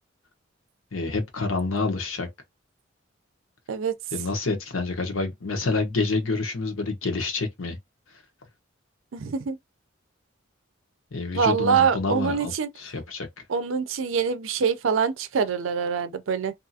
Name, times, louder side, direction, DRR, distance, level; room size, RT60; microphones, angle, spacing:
voice 1, 0.9-2.3 4.1-7.8 11.1-12.5 12.8-13.3, left 3 dB, 90° left, 0.9 m, -28 dB
voice 2, 9.1-9.6 11.3-12.7 13.5-16.5, right 6 dB, 80° right, 0.5 m, -24 dB
2.6 x 2.4 x 2.6 m
head